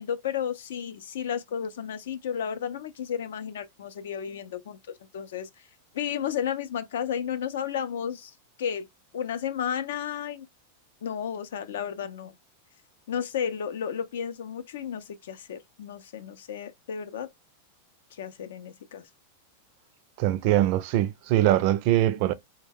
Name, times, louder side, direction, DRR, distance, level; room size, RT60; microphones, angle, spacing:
voice 1, 0.0-4.8 5.1-5.7 5.9-8.9 9.1-10.5 11.0-12.3 13.1-17.3 18.1-19.1, left 8 dB, 80° left, 0.4 m, -33 dB
voice 2, 20.2-22.3, right 13 dB, 50° right, 0.3 m, -22 dB
2.2 x 2.1 x 3.2 m
supercardioid pair, 135°, 0 cm